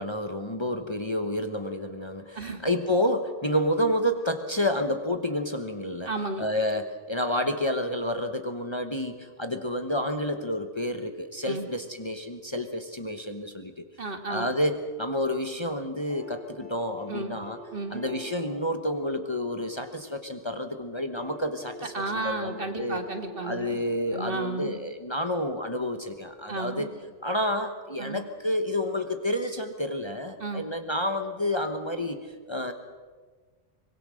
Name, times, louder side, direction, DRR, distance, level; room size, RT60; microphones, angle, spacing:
voice 1, 0.0-6.1 6.4-13.8 14.3-17.6 17.9-21.9 22.2-23.0 23.4-26.9 27.2-32.7, left 1 dB, 25° left, 6 dB, 1.2 m, -29 dB
voice 2, 6.1-6.5 11.5-11.7 14.0-14.5 17.1-17.4 17.7-18.0 21.9-23.8 24.1-24.8 26.5-26.9 28.0-28.2 30.4-30.7, right 3 dB, 50° right, 5 dB, 2.0 m, -33 dB
sound 1, 16.1-20.2 21.1-24.7 26.2-26.3, left 1 dB, 5° left, 4.5 m, -46 dB
24.5 x 21.0 x 6.5 m, 1.4 s
omnidirectional pair, 1.2 m